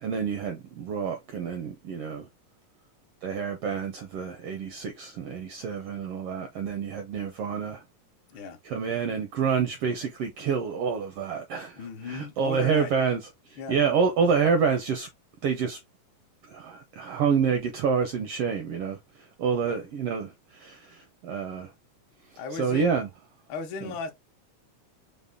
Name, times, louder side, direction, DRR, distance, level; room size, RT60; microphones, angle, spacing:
voice 1, 0.0-2.3 3.2-7.8 8.6-13.2 13.5-15.1 15.4-15.8 16.5-21.7 22.6-23.1 23.8-23.9, right 6 dB, 80° right, 1.3 m, -28 dB
voice 2, 11.8-12.9 13.6-13.8 19.7-19.8 22.4-22.9 23.5-24.1, left 4 dB, 75° left, 1.1 m, -36 dB
5.2 x 2.1 x 3.5 m
omnidirectional pair, 3.3 m